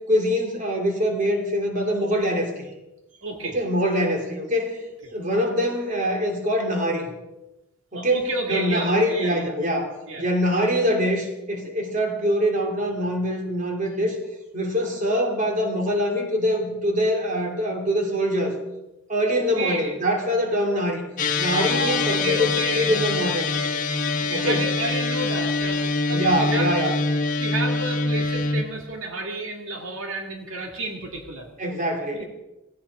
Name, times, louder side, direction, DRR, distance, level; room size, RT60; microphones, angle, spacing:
voice 1, 0.1-2.7 3.5-4.8 5.1-7.1 7.9-9.9 10.2-14.2 14.5-18.6 19.1-21.1 21.4-23.5 24.3-24.6 26.1-26.9 31.6-32.2, equal, 40° right, 2 dB, 3.0 m, -24 dB
voice 2, 3.2-3.6 4.0-4.1 7.9-9.5 10.1-10.2 19.3-20.0 21.5-23.0 24.2-27.0 27.4-31.5 32.1-32.2, right 2 dB, 80° right, 2 dB, 2.2 m, -31 dB
sound 1, 21.2-28.6, left 3 dB, 40° left, 1.3 m, -24 dB
17.0 x 17.0 x 4.9 m, 0.98 s
head